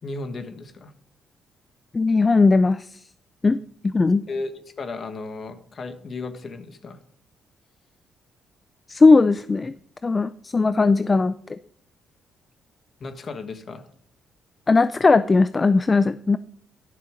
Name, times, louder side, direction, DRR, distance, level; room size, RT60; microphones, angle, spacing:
voice 1, 0.0-0.9 4.3-4.5 4.8-7.0 13.0-13.9, left 3 dB, 45° left, 10 dB, 1.3 m, -34 dB
voice 2, 1.9-3.0 3.4-3.6 3.8-4.2 8.9-9.7 10.0-11.6 14.7-16.4, left 3 dB, 25° left, 14 dB, 0.4 m, -18 dB
10.5 x 6.8 x 5.0 m, 0.63 s
cardioid pair, 90°, 0 cm